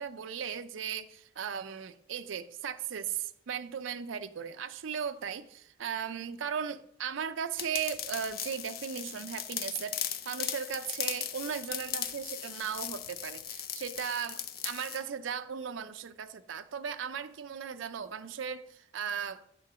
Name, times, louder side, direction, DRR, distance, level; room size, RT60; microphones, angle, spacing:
voice 1, 0.0-10.0 10.3-19.4, right 7 dB, 85° right, 0.5 m, -37 dB
sound 1, 7.6-15.0, left 10 dB, 50° left, 0.4 m, -38 dB
9.0 x 3.9 x 6.7 m
head